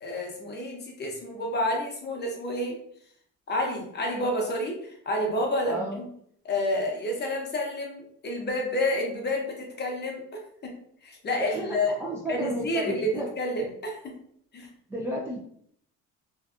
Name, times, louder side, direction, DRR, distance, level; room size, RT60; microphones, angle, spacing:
voice 1, 0.0-2.8 3.5-6.1 6.4-10.7 11.0-11.9 12.3-14.2 14.5-14.7, left 1 dB, 30° left, 1 dB, 0.6 m, -29 dB
voice 2, 5.7-6.0 11.4-13.3 14.9-15.4, right 1 dB, 10° right, -5 dB, 0.3 m, -32 dB
2.6 x 2.3 x 2.4 m, 0.67 s
cardioid pair, 120°, 35 cm